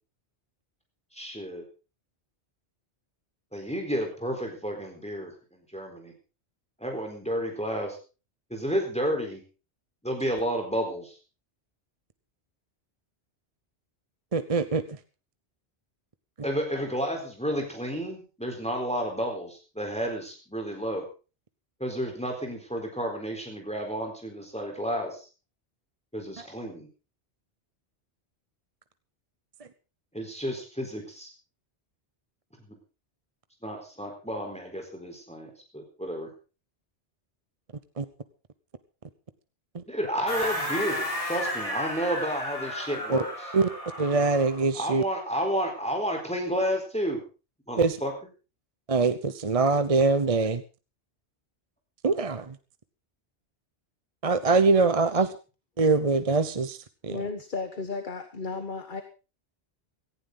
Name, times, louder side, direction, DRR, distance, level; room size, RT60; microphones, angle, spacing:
voice 1, 1.1-1.6 3.5-6.1 6.8-8.0 8.5-9.4 10.0-11.1 16.4-21.0 21.8-25.2 26.1-26.9 30.1-31.3 33.6-36.3 39.9-43.5 44.7-47.2 47.7-48.1, equal, 5° left, 2 dB, 4.1 m, -31 dB
voice 2, 14.3-14.8 38.0-38.1 43.1-43.2 43.5-43.7 44.0-45.0 47.8-48.0 48.9-50.6 52.0-52.5 54.2-55.3 55.8-56.8 57.0-57.2, right 4 dB, 35° right, 12 dB, 0.9 m, -23 dB
sound 1, 40.3-44.7, left 1 dB, 30° left, 4.5 m, -33 dB
voice 3, 57.1-59.0, left 4 dB, 50° left, 8 dB, 1.5 m, -34 dB
17.5 x 15.0 x 4.0 m, 0.34 s
omnidirectional pair, 1.1 m